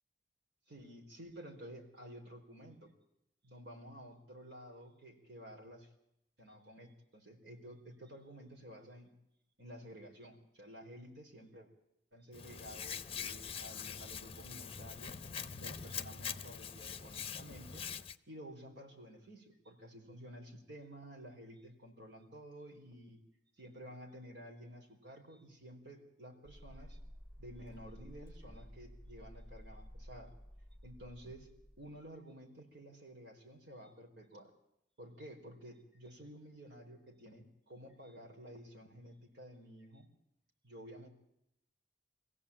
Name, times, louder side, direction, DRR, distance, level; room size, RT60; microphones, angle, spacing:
voice 1, 0.7-2.9 3.4-5.9 6.4-9.1 9.6-11.7 12.1-15.2 15.6-17.8 18.3-23.2 23.6-27.0 27.4-30.3 30.8-31.5 31.8-34.5 35.0-40.1 40.6-41.1, equal, 65° right, 2 dB, 4.8 m, -52 dB
Hands, 12.3-18.2, left 7 dB, 30° left, 0.8 m, -44 dB
sound 1, 26.5-32.0, equal, 15° left, 6.8 m, -53 dB
24.0 x 16.0 x 8.7 m, 0.79 s
head